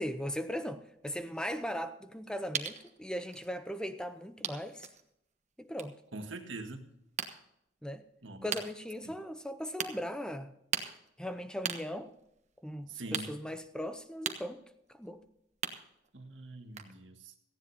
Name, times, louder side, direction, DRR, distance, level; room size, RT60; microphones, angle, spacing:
voice 1, 0.0-4.9 5.6-5.9 7.8-8.0 8.4-10.5 11.2-12.1 12.6-14.6 14.9-15.2, equal, 5° left, 0.6 m, -38 dB
sound 1, 0.9-3.5 4.1-4.2 4.4-5.1 5.6-6.1 6.5-7.3 8.0-8.1 8.5-8.6 9.4-9.5 9.8-9.9 10.7-16.3 16.5-16.9, right 7 dB, 40° right, 1.1 m, -39 dB
voice 2, 6.1-6.9 8.2-8.5 9.0-9.1 12.9-13.3 16.1-17.3, right 2 dB, 75° right, 1.7 m, -43 dB
17.5 x 15.0 x 2.8 m
head